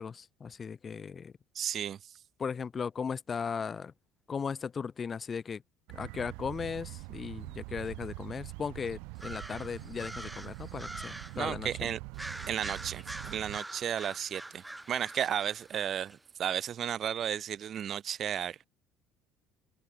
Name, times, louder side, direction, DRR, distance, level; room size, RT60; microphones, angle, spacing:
voice 1, 0.0-1.3 2.4-3.9 4.3-5.6 5.9-11.9, left 6 dB, 25° left, 1.7 m, -37 dB
voice 2, 1.5-2.1 11.3-12.0 12.5-18.6, right 9 dB, 40° right, 2.6 m, -34 dB
sound 1, 5.9-13.6, right 32 dB, 80° right, 2.7 m, -44 dB
sound 2, 9.1-11.4 12.1-16.2, right 2 dB, 5° right, 4.9 m, -45 dB
open air
cardioid pair, 140°, 0 cm